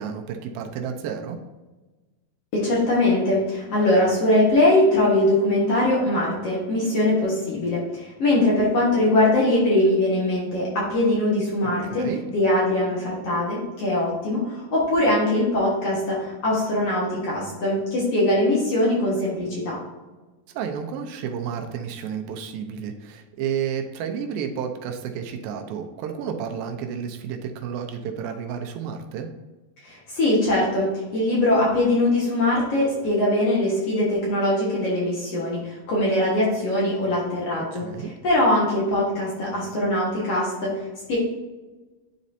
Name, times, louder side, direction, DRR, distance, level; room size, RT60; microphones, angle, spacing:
voice 1, 0.0-1.4 11.8-12.2 20.5-29.3 37.7-38.1, right 7 dB, 85° right, 4 dB, 2.5 m, -31 dB
voice 2, 2.5-19.8 29.8-37.8 38.2-40.7 41.1-41.2, left 1 dB, 55° left, -5 dB, 2.1 m, -22 dB
10.5 x 4.1 x 2.7 m, 1.2 s
omnidirectional pair, 4.2 m